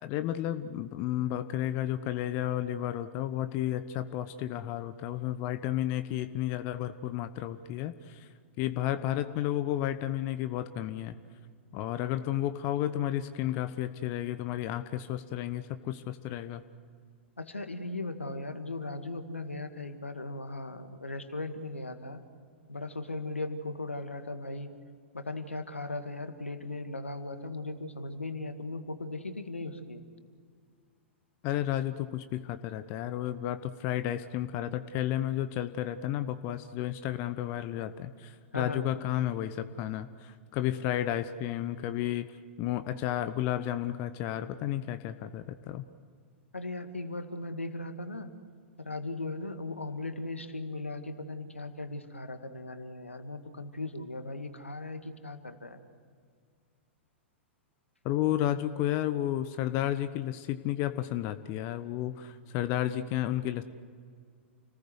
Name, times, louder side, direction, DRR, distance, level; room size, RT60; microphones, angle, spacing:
voice 1, 0.0-8.3 8.6-11.1 11.7-16.6 31.4-42.3 42.6-45.8 58.0-63.6, left 12 dB, 35° left, 11 dB, 1.0 m, -32 dB
voice 2, 17.4-22.2 22.7-24.7 25.1-30.0 38.5-38.9 46.5-48.3 48.8-55.8, left 2 dB, 80° left, 8 dB, 2.0 m, -38 dB
30.0 x 19.5 x 8.0 m, 2.1 s
figure-of-eight pair, 100°, 6 cm